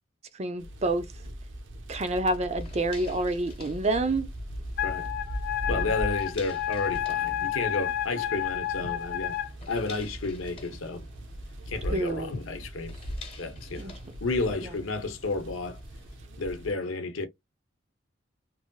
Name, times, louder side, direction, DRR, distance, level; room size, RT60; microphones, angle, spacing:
voice 1, 0.3-1.2 1.9-4.3 5.7-5.9 11.9-12.3 13.8-13.9 14.6-14.7, right 2 dB, 30° right, 0.5 m, -28 dB
sound 1, 0.6-16.7, equal, 65° right, 0.7 m, -40 dB
sound 2, 2.5-16.2, left 5 dB, 30° left, 1.0 m, -52 dB
Wind instrument woodwind instrument, 4.8-9.5, left 11 dB, 50° left, 0.5 m, -30 dB
voice 2, 5.7-9.4 9.7-11.1 11.7-13.0 13.4-13.9 14.2-15.8 16.4-17.3, left 3 dB, 80° left, 0.8 m, -32 dB
3.2 x 2.6 x 2.2 m
head